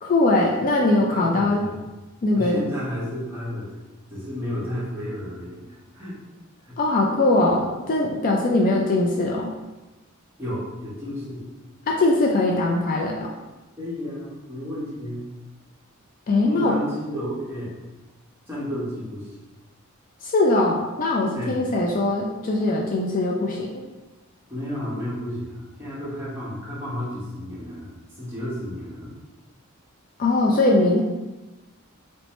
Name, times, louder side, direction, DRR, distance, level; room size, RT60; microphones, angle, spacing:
voice 1, 0.0-1.6 2.2-2.6 6.8-9.5 11.9-13.3 16.3-16.8 20.2-23.7 30.2-31.0, left 2 dB, 40° left, -1 dB, 0.4 m, -21 dB
voice 2, 0.9-1.9 2.3-3.7 4.1-6.2 6.6-6.8 10.4-11.4 13.8-15.3 16.4-17.7 18.5-19.3 21.3-21.7 24.5-29.1, left 1 dB, 10° right, -9 dB, 1.1 m, -32 dB
3.1 x 3.0 x 3.1 m, 1.1 s
head